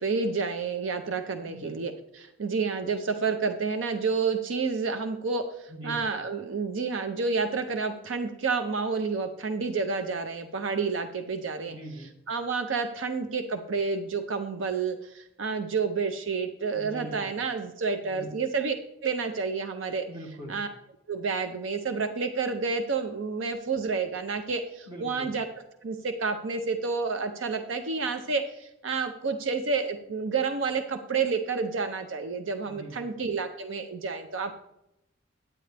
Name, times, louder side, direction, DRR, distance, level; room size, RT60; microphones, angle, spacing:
voice 1, 0.0-11.8 12.3-18.7 19.0-20.1 20.5-20.7 21.1-25.5 25.8-34.6, right 4 dB, 70° right, 7 dB, 0.6 m, -29 dB
voice 2, 1.4-1.8 5.7-6.0 11.6-12.1 16.7-17.3 18.0-18.3 20.1-20.6 24.9-25.3 32.7-33.0, right 1 dB, 25° right, -1 dB, 2.1 m, -42 dB
9.7 x 9.1 x 3.3 m, 0.84 s
head